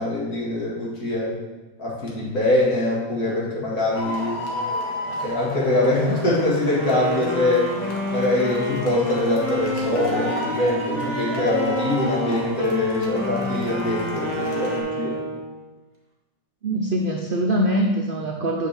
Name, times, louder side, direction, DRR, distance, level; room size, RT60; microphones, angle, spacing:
voice 1, 0.0-1.3 1.8-4.4 5.2-7.7 8.1-15.2, left 2 dB, 65° left, -6 dB, 2.3 m, -23 dB
sound 1, 3.9-14.8, left 1 dB, 85° left, 1.7 m, -32 dB
Wind instrument woodwind instrument, 6.6-15.6, equal, 20° right, 1.0 m, -28 dB
voice 2, 16.6-18.7, right 1 dB, 65° right, 0 dB, 0.5 m, -23 dB
8.0 x 5.4 x 3.4 m, 1.2 s
omnidirectional pair, 1.7 m